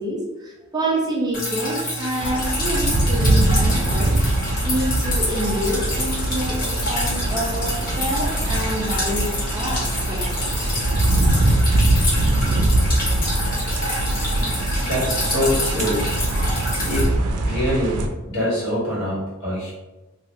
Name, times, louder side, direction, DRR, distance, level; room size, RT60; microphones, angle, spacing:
voice 1, 0.0-4.2 4.6-10.5 15.3-15.9, right 1 dB, 20° right, -3 dB, 0.5 m, -27 dB
Drip, 1.3-17.1, left 1 dB, 40° left, 0.8 m, -27 dB
sound 1, 2.2-18.1, right 1 dB, 90° right, 0.4 m, -22 dB
voice 2, 14.8-16.1 16.8-17.1 17.4-19.7, equal, 85° left, -6 dB, 1.3 m, -24 dB
3.2 x 2.3 x 2.6 m, 1.1 s
head